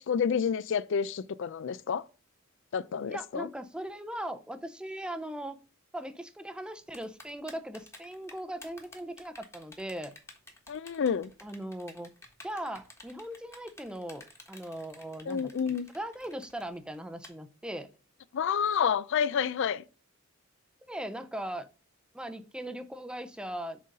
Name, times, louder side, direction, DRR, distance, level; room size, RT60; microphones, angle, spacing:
voice 1, 0.0-2.0 2.7-3.5 10.7-11.3 15.3-15.9 18.3-19.8, left 7 dB, 60° left, 0.4 m, -29 dB
voice 2, 3.1-5.6 5.9-10.1 11.4-12.1 12.4-17.9 20.9-21.7 22.1-23.8, right 1 dB, 5° right, 0.5 m, -39 dB
Typing, 6.9-17.3, left 2 dB, 15° left, 1.3 m, -51 dB
6.4 x 3.9 x 5.3 m
head